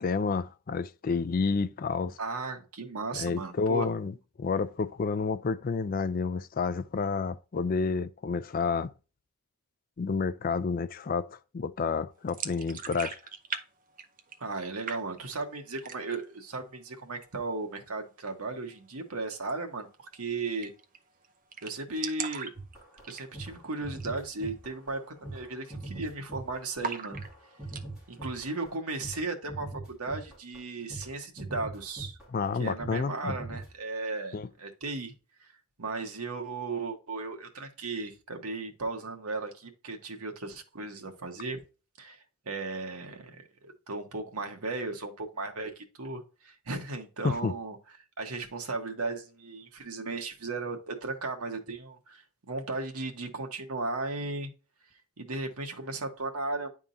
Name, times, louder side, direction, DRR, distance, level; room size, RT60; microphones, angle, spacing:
voice 1, 0.0-2.2 3.1-4.1 4.4-8.9 10.0-13.2 32.3-33.3 34.3-34.5 47.2-47.5, left 4 dB, 40° left, 0.4 m, -30 dB
voice 2, 2.2-3.9 14.4-20.7 21.6-22.5 23.1-27.2 28.1-32.2 32.6-35.1 35.4-35.5 35.8-41.6 42.0-47.8 48.2-54.5 55.2-56.7, right 3 dB, 80° right, 1.3 m, -36 dB
sound 1, 12.3-13.6 13.9-14.6 14.9-15.4 15.8-16.3 16.6-16.7 17.0-17.7 19.4-19.5 19.8-19.9 20.2-20.3 20.6-21.0 21.2-21.3 21.5-23.6 23.9-24.2 24.5-24.6 25.2-25.5 25.7-26.3 26.8-27.9, right 6 dB, 35° right, 0.6 m, -39 dB
sound 2, 22.5-29.2 29.5-30.6 30.9-31.1 31.4-32.5 32.8-33.0 33.3-33.7, right 2 dB, 5° right, 2.3 m, -42 dB
10.0 x 3.6 x 2.7 m
head